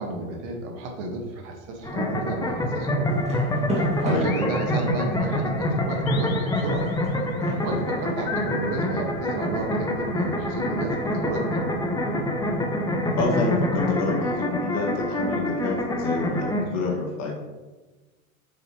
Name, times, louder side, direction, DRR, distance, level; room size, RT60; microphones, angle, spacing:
voice 1, 0.0-3.3 4.0-6.9 7.6-11.6, right 2 dB, 55° right, 2 dB, 1.8 m, -31 dB
sound 1, 1.8-16.6, left 1 dB, 10° left, 0.9 m, -26 dB
sound 2, 3.1-4.9 5.4-8.7, equal, 15° right, 2.3 m, -35 dB
sound 3, 4.3-5.4 6.1-7.2 8.3-9.7, left 8 dB, 70° left, 1.0 m, -38 dB
voice 2, 13.2-17.3, left 3 dB, 35° left, -1 dB, 2.2 m, -28 dB
7.7 x 6.6 x 3.2 m, 1.2 s
hypercardioid pair, 100°, 43 cm